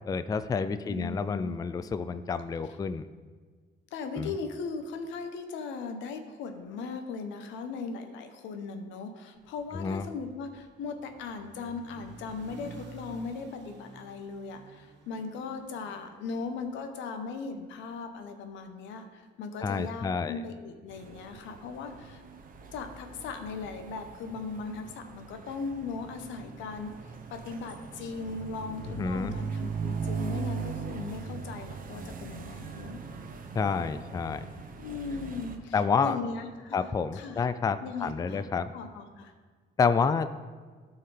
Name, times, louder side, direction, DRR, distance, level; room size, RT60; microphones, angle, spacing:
voice 1, 0.1-3.1 4.2-4.3 9.7-10.1 19.6-20.4 28.9-29.4 33.5-34.4 35.7-36.2 36.7-38.7 39.8-40.3, left 5 dB, 20° left, 12 dB, 0.3 m, -29 dB
voice 2, 0.8-1.5 3.9-22.2 22.7-26.9 27.3-33.0 34.8-37.4 37.8-38.4 38.7-39.3, left 4 dB, 90° left, 6 dB, 0.8 m, -38 dB
sound 1, 9.3-17.7, right 4 dB, 75° right, 1.2 m, -52 dB
sound 2, 20.9-35.6, right 5 dB, 45° right, 0.9 m, -39 dB
12.5 x 4.6 x 3.3 m, 1.5 s
cardioid pair, 90°, 19 cm